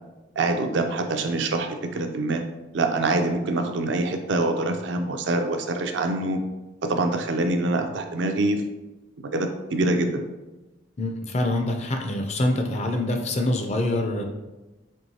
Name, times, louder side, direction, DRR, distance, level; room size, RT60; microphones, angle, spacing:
voice 1, 0.4-2.4 2.7-6.4 6.8-8.6 9.3-10.2, right 2 dB, 65° right, 5 dB, 0.4 m, -25 dB
voice 2, 11.0-14.2, left 1 dB, 30° left, 4 dB, 0.4 m, -25 dB
4.5 x 3.1 x 2.7 m, 1.1 s
head